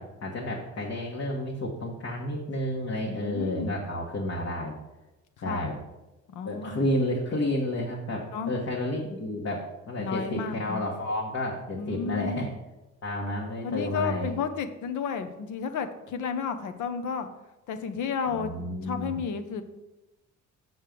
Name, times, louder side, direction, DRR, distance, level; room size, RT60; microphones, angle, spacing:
voice 1, 0.0-4.7 5.4-5.7 6.4-12.5 13.0-14.3 18.3-19.2, left 1 dB, 50° left, -2 dB, 1.5 m, -31 dB
voice 2, 3.0-3.7 5.4-5.7 6.3-6.9 8.3-8.5 10.0-10.9 11.7-12.5 13.6-17.3 17.7-19.6, left 6 dB, 80° left, 9 dB, 0.9 m, -32 dB
6.6 x 6.3 x 5.2 m, 1.0 s
cardioid pair, 90°, 30 cm